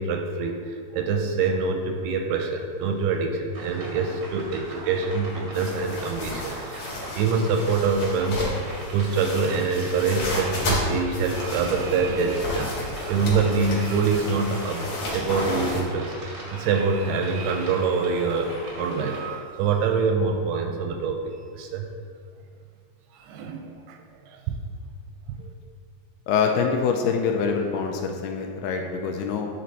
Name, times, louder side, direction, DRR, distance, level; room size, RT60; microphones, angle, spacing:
voice 1, 0.0-6.9 7.1-14.9 15.1-21.9 23.1-24.6 25.4-25.5, right 4 dB, 85° right, 4 dB, 2.4 m, -25 dB
sound 1, 3.5-19.3, right 1 dB, 65° right, 1.0 m, -40 dB
sound 2, 5.5-15.8, left 1 dB, 50° left, 2.5 m, -32 dB
voice 2, 26.3-29.5, left 6 dB, 85° left, 3 dB, 2.4 m, -25 dB
10.5 x 4.4 x 4.0 m, 2.3 s
omnidirectional pair, 4.8 m